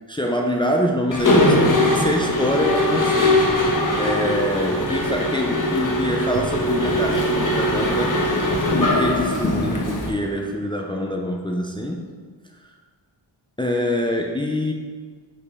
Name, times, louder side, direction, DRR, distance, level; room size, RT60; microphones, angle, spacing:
voice 1, 0.1-3.5 3.9-8.2 8.9-12.0 13.6-14.7, left 1 dB, 10° left, 1 dB, 0.6 m, -25 dB
Mechanisms, 1.1-10.1, left 1 dB, 40° left, 1.2 m, -20 dB
6.5 x 5.6 x 4.1 m, 1.5 s
cardioid pair, 65°, 48 cm